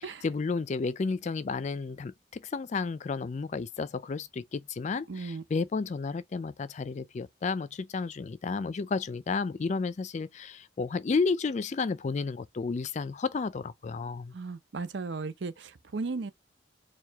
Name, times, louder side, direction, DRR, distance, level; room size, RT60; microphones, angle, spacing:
voice 1, 0.0-14.3, left 4 dB, 35° left, 0.3 m, -32 dB
voice 2, 5.1-5.4 14.3-16.3, right 4 dB, 60° right, 0.6 m, -36 dB
4.6 x 2.2 x 3.4 m
head